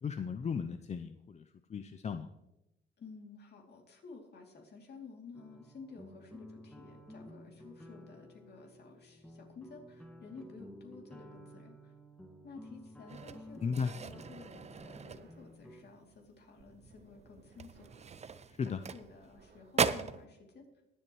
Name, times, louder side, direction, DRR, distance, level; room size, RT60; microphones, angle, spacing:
voice 1, 0.0-2.3 13.6-13.9 18.6-18.8, left 6 dB, 35° left, 8 dB, 0.5 m, -36 dB
voice 2, 3.0-11.9 12.4-17.9 18.6-20.7, left 4 dB, 55° left, 1 dB, 2.8 m, -53 dB
sound 1, 5.3-15.8, equal, 5° left, 1.6 m, -53 dB
sound 2, 13.1-15.7 16.1-16.4 16.7-16.9 17.5-19.4 19.7-20.2, right 6 dB, 35° right, 0.6 m, -37 dB
sound 3, 13.1-19.9, right 3 dB, 70° right, 2.6 m, -63 dB
21.5 x 7.8 x 3.1 m, 0.93 s
cardioid pair, 90°, 20 cm